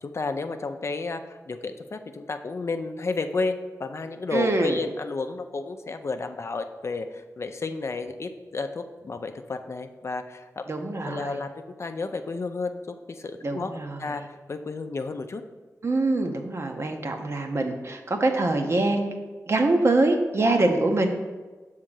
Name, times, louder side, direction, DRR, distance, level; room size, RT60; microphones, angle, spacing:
voice 1, 0.0-10.6 11.0-15.4, left 3 dB, 50° left, 7 dB, 0.5 m, -32 dB
voice 2, 4.3-4.8 10.7-11.4 13.4-14.0 15.8-19.2 19.5-21.1, right 2 dB, 50° right, 4 dB, 0.8 m, -24 dB
6.4 x 3.7 x 6.2 m, 1.3 s
wide cardioid pair, 90°, 6 cm